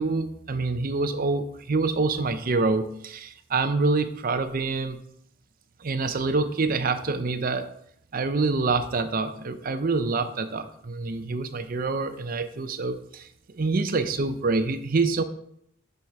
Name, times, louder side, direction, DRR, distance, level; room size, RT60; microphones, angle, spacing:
voice 1, 0.0-5.0 5.8-7.7 8.1-15.2, right 3 dB, 40° right, 10 dB, 0.5 m, -26 dB
6.8 x 4.8 x 5.8 m, 0.73 s
head